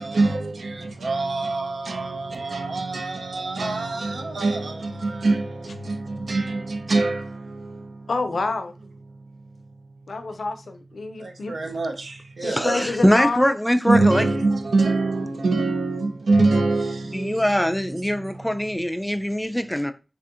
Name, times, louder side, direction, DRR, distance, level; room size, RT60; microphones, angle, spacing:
voice 1, 0.0-8.1 9.1-9.4 11.2-12.9 13.9-17.6 18.0-18.3, right 3 dB, 90° right, 0.5 m, -25 dB
voice 2, 8.1-8.8 10.1-11.6 12.4-13.5, left 3 dB, 85° left, 0.4 m, -28 dB
voice 3, 12.4-14.3 17.1-19.9, equal, 10° left, 0.3 m, -22 dB
3.3 x 2.6 x 2.4 m
cardioid pair, 45°, 0 cm